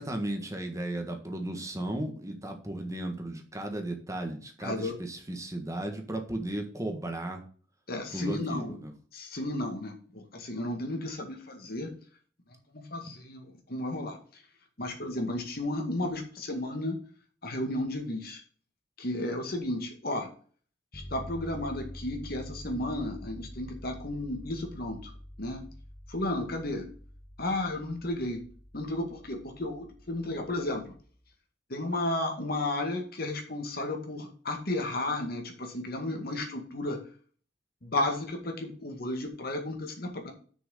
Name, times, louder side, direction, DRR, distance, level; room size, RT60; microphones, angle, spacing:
voice 1, 0.0-7.4 8.1-8.9, right 1 dB, 20° right, 4 dB, 1.5 m, -35 dB
voice 2, 4.6-5.0 7.9-8.8 9.1-11.9 12.7-14.4 14.8-17.0 17.4-18.4 19.0-20.3 20.9-25.1 25.4-25.7 26.1-26.9 27.4-28.4 28.7-30.9 31.7-37.0 37.8-40.3, left 1 dB, 55° left, 3 dB, 2.1 m, -33 dB
sound 1, 20.9-31.1, equal, 25° left, 1.3 m, -47 dB
6.5 x 6.2 x 6.6 m, 0.43 s
head